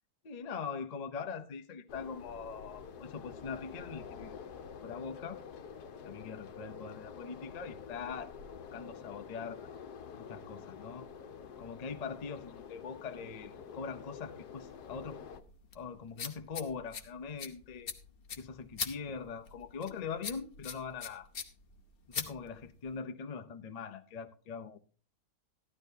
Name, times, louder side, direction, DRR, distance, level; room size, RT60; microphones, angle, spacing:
voice 1, 0.2-4.4 4.8-5.4 6.0-8.3 8.7-9.7 10.2-11.1 11.6-15.2 15.7-17.9 18.4-21.3 22.1-24.8, left 5 dB, 60° left, 0.4 m, -42 dB
sound 1, 1.9-15.4, left 7 dB, 75° left, 1.4 m, -48 dB
sound 2, 14.6-23.0, left 6 dB, 45° left, 0.9 m, -43 dB
14.0 x 12.0 x 2.7 m
omnidirectional pair, 1.7 m